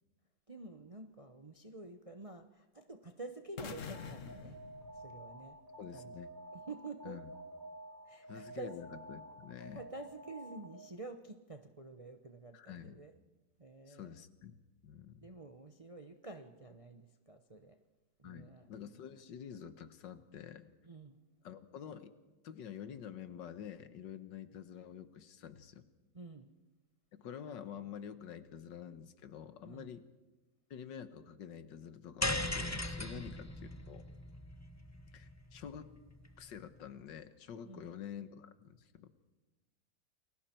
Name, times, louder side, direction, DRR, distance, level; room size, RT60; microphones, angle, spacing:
voice 1, 0.5-4.6 4.9-5.6 5.9-6.1 6.5-7.2 8.1-8.8 9.7-13.1 13.6-14.2 15.2-17.8 18.2-18.7 20.8-21.2 26.1-26.5 29.6-29.9 33.1-33.3 37.7-37.9, right 2 dB, 30° right, 6 dB, 0.6 m, -49 dB
sound 1, 3.6-5.7, left 6 dB, 50° left, 1.3 m, -47 dB
Alarm, 3.9-11.0, right 1 dB, 10° right, 2.7 m, -51 dB
voice 2, 5.8-6.3 7.0-7.3 8.3-9.8 12.5-13.0 13.9-15.3 18.2-20.7 21.4-22.1 22.4-25.9 27.2-30.1 30.7-34.0 35.1-35.9 36.4-39.1, left 8 dB, 85° left, 11 dB, 1.8 m, -48 dB
sound 2, 32.2-36.6, left 1 dB, 15° left, 0.5 m, -39 dB
29.0 x 21.0 x 4.5 m, 1.2 s
omnidirectional pair, 1.9 m